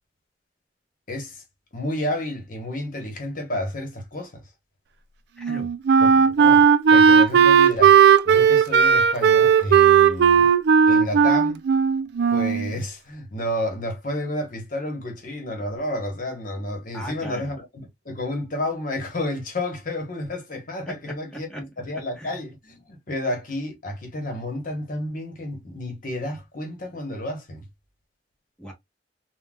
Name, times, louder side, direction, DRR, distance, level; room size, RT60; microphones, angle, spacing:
voice 1, 1.1-1.4 1.7-4.4 6.0-6.6 6.9-8.0 8.2-10.5 10.9-11.6 12.3-17.7 18.0-27.6, left 1 dB, 50° left, 1.0 m, -31 dB
voice 2, 5.4-5.7 16.9-17.5 20.9-21.7 21.9-22.4 28.6-28.7, equal, 5° left, 1.1 m, -38 dB
Wind instrument woodwind instrument, 5.4-12.7, right 7 dB, 65° right, 0.3 m, -16 dB
3.8 x 2.2 x 2.2 m
head